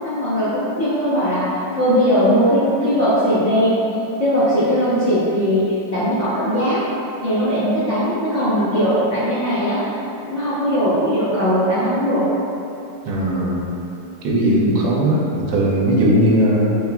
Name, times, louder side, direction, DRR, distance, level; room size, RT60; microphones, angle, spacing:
voice 1, 0.0-1.5 1.7-3.8 4.2-6.8 7.2-9.8 10.2-12.3 14.4-14.8, equal, 55° left, -13 dB, 0.9 m, -19 dB
voice 2, 13.0-13.7 14.2-16.8, right 1 dB, 80° right, -3 dB, 1.3 m, -18 dB
4.8 x 3.1 x 2.2 m, 2.9 s
omnidirectional pair, 2.1 m